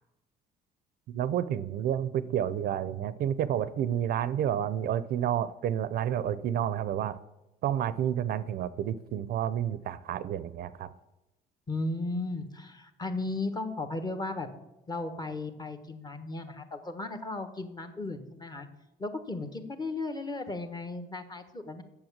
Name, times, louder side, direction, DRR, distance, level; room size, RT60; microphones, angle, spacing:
voice 1, 1.1-7.2 7.6-10.9, right 10 dB, 65° right, 15 dB, 0.5 m, -30 dB
voice 2, 11.7-14.5 14.9-18.7 19.0-21.8, left 2 dB, 25° left, 8 dB, 1.2 m, -35 dB
7.9 x 6.9 x 7.3 m, 0.95 s
cardioid pair, 110°, 17 cm